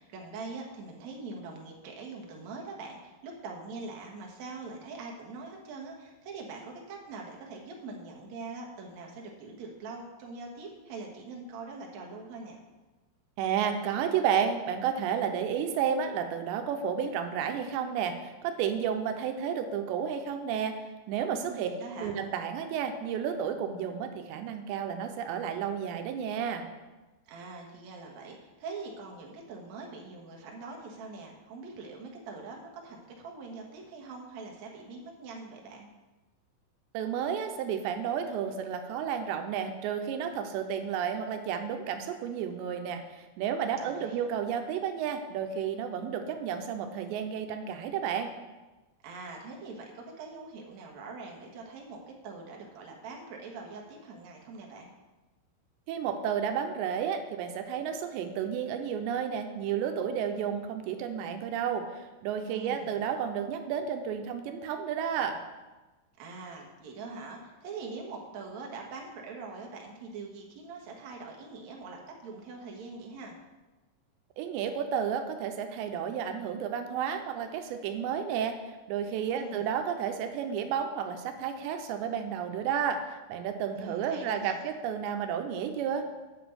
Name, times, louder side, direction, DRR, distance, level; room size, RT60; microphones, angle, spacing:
voice 1, 0.0-12.6 21.4-22.1 27.3-35.9 43.8-44.3 49.0-54.9 62.5-63.0 66.2-73.4 79.2-79.7 83.8-84.6, right 3 dB, 60° right, 0 dB, 2.0 m, -43 dB
voice 2, 13.4-20.8 21.1-21.7 22.0-26.6 36.9-48.3 55.9-65.4 74.4-78.5 78.9-86.1, right 8 dB, 90° right, 6 dB, 2.9 m, -32 dB
7.5 x 6.1 x 7.9 m, 1.1 s
omnidirectional pair, 5.1 m